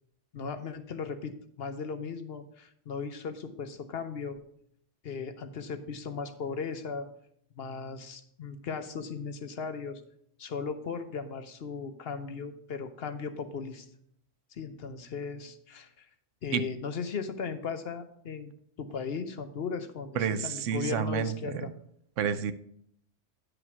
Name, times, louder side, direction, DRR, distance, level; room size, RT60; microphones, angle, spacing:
voice 1, 0.3-4.4 5.0-7.1 7.5-10.0 10.4-13.9 14.5-16.1 16.4-21.7, left 5 dB, 55° left, 9 dB, 0.9 m, -37 dB
voice 2, 20.2-21.6 22.2-22.5, right 7 dB, 80° right, 12 dB, 1.0 m, -29 dB
9.7 x 5.1 x 5.9 m, 0.69 s
omnidirectional pair, 1.3 m